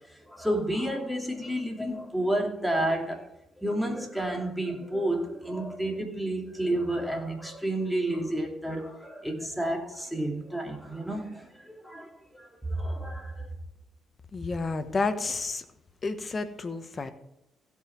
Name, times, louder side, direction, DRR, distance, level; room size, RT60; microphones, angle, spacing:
voice 1, 0.1-3.2 3.6-13.5, right 1 dB, ahead, 2.6 m, -31 dB
voice 2, 14.3-15.6 16.0-17.1, left 3 dB, 35° left, 1.1 m, -30 dB
16.5 x 5.7 x 4.6 m
cardioid pair, 90°, 0 cm